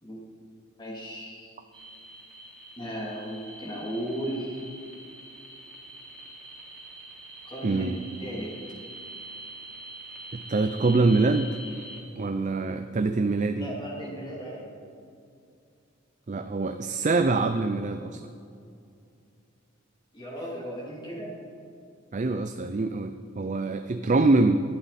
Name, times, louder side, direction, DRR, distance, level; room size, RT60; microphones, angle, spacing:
voice 1, 0.8-1.5 2.8-4.6 7.4-7.9 8.2-8.5 13.5-14.7 20.1-21.4, equal, 25° left, -4 dB, 2.7 m, -36 dB
sound 1, 1.7-12.0, right 1 dB, 5° left, 3.5 m, -44 dB
voice 2, 7.6-8.0 10.3-11.6 12.2-13.7 16.3-18.3 22.1-24.6, right 3 dB, 40° right, 8 dB, 0.5 m, -24 dB
19.5 x 11.5 x 4.2 m, 2.5 s
head